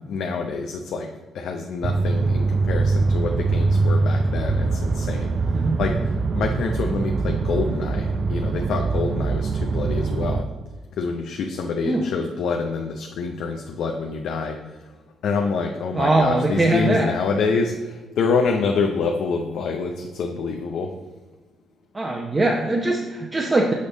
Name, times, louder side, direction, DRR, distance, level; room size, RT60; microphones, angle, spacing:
voice 1, 0.1-10.5 10.9-14.9 15.2-20.9, left 4 dB, 75° left, 3 dB, 0.5 m, -27 dB
sound 1, 1.8-10.4, right 3 dB, 45° right, 0.4 m, -23 dB
voice 2, 15.9-17.1 21.9-23.7, right 2 dB, 25° right, -1 dB, 0.8 m, -21 dB
6.5 x 5.3 x 3.9 m, 1.2 s
cardioid pair, 90°, 0 cm